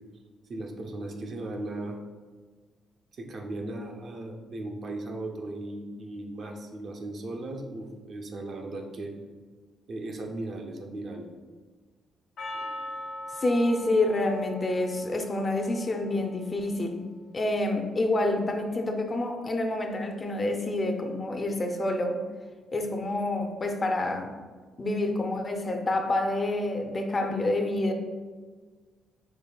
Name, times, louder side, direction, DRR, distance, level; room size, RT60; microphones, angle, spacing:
voice 1, 0.5-2.0 3.1-9.1 9.9-11.3, right 2 dB, 55° right, 2 dB, 0.5 m, -37 dB
Percussion, 12.4-16.9, left 1 dB, 80° left, 1.0 m, -41 dB
voice 2, 13.3-17.0 17.3-22.2 22.7-24.3 24.8-27.9, left 2 dB, 35° left, 4 dB, 0.5 m, -28 dB
5.1 x 3.2 x 2.3 m, 1.5 s
cardioid pair, 90°, 0 cm